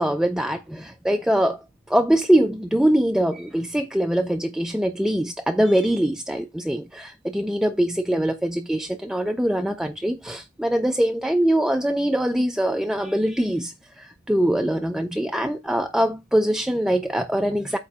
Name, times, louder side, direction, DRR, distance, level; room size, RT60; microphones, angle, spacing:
voice 1, 0.0-1.6 1.9-17.8, right 1 dB, 5° right, 0.3 m, -23 dB
8.3 x 2.9 x 5.6 m
head